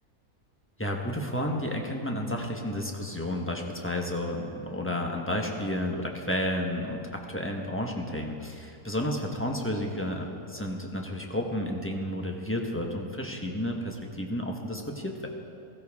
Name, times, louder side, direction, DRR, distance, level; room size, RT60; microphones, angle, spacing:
voice 1, 0.8-15.3, left 1 dB, 10° left, 1 dB, 1.0 m, -31 dB
16.5 x 15.5 x 3.6 m, 2.7 s
omnidirectional pair, 1.6 m